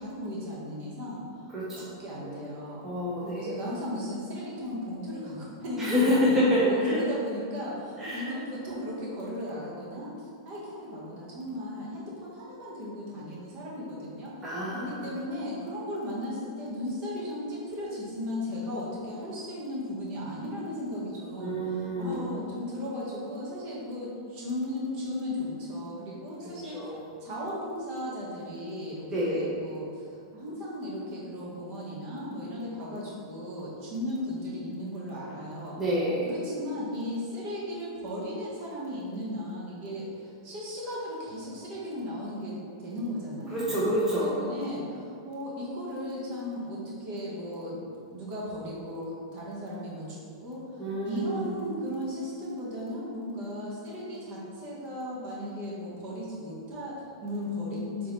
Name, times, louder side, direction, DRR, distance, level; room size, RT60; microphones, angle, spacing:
voice 1, 0.0-2.9 3.2-14.3 14.7-26.9 27.2-35.8 36.2-47.8 48.1-58.1, left 1 dB, 45° right, -5 dB, 1.4 m, -36 dB
voice 2, 1.5-1.9 2.2-2.3 2.8-3.6 5.8-7.0 8.0-8.3 14.4-15.1 21.4-22.3 26.7-27.0 29.1-29.4 35.8-36.3 43.5-44.5 50.8-51.5, equal, 15° right, -8 dB, 0.9 m, -27 dB
3.9 x 3.7 x 3.2 m, 2.4 s
hypercardioid pair, 120°, 2 cm